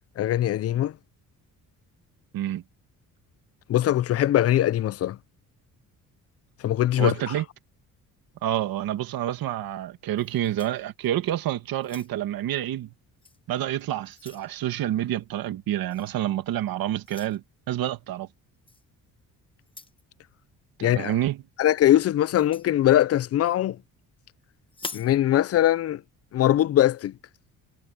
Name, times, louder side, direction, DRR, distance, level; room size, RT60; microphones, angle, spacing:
voice 1, 0.2-0.9 3.7-5.2 6.6-7.1 20.8-21.2 21.6-23.8 24.9-26.0 26.3-27.1, left 12 dB, 45° left, 0.4 m, -21 dB
voice 2, 7.0-7.5 8.4-12.9 13.5-18.3 20.8-21.4, right 12 dB, 75° right, 1.9 m, -28 dB
sound 1, 10.2-11.3 11.7-12.4 13.2-13.4 13.8-14.5 15.9-16.1 17.0-17.4 18.7-18.8 19.6-20.0 22.3-22.7 24.7-25.2, left 3 dB, 15° left, 1.0 m, -43 dB
cardioid pair, 150°, 35 cm